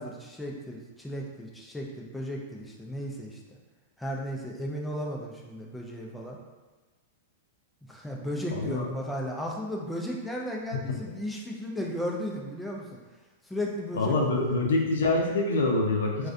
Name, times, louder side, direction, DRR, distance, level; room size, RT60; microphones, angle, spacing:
voice 1, 0.0-3.4 4.0-6.4 7.9-12.9 13.4-14.6 16.2-16.3, equal, 5° left, -1 dB, 0.4 m, -35 dB
voice 2, 8.5-8.9 13.9-16.3, left 2 dB, 85° left, 0 dB, 0.5 m, -25 dB
2.4 x 2.2 x 2.5 m, 1.2 s
hypercardioid pair, 125°, 0 cm